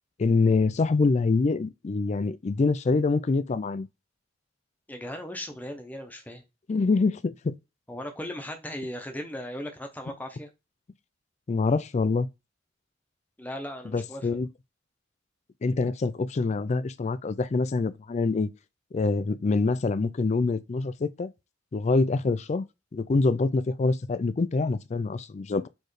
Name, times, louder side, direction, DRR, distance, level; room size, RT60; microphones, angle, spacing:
voice 1, 0.2-3.9 6.7-7.6 11.5-12.3 13.9-14.5 15.6-18.5 18.9-21.3 21.7-22.7 22.9-25.7, left 3 dB, 35° left, 0.4 m, -25 dB
voice 2, 4.9-6.4 7.9-10.5 13.4-14.3, left 1 dB, 10° left, 0.8 m, -37 dB
4.5 x 3.1 x 3.1 m
head